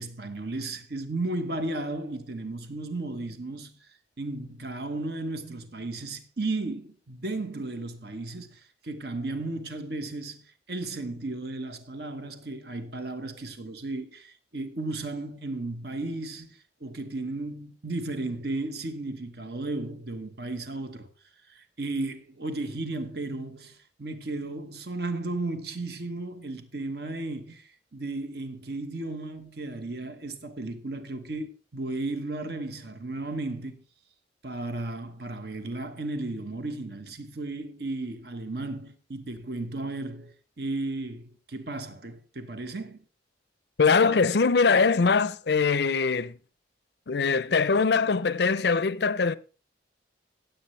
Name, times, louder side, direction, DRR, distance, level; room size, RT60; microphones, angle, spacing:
voice 1, 0.0-3.7 4.2-21.1 21.5-33.8 34.4-43.0, right 2 dB, 55° right, 1.2 m, -34 dB
voice 2, 43.8-46.3 47.1-49.3, left 4 dB, 60° left, 0.5 m, -22 dB
16.0 x 8.0 x 3.2 m
head